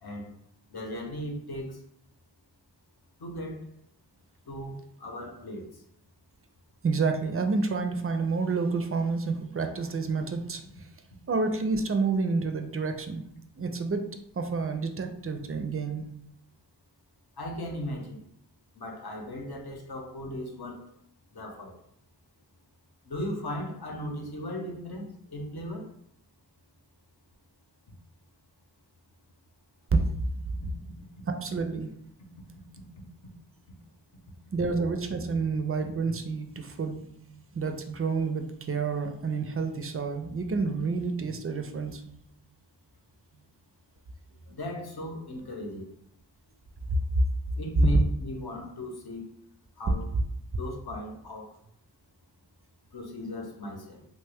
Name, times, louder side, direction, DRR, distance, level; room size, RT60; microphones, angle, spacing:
voice 1, 0.0-0.3 0.7-1.8 3.2-3.6 4.5-5.7 17.4-18.2 18.7-20.8 21.3-21.8 23.1-25.9 44.5-45.9 47.6-49.2 49.8-50.0 50.5-51.5 52.9-54.1, left 1 dB, 60° left, 2 dB, 0.8 m, -37 dB
voice 2, 6.8-10.6 11.3-13.2 13.6-14.0 14.4-16.1 29.9-30.0 31.3-31.9 34.5-42.0 47.1-47.2, right 4 dB, 35° right, 6 dB, 0.4 m, -29 dB
3.0 x 2.2 x 3.3 m, 0.74 s
wide cardioid pair, 55°, 44 cm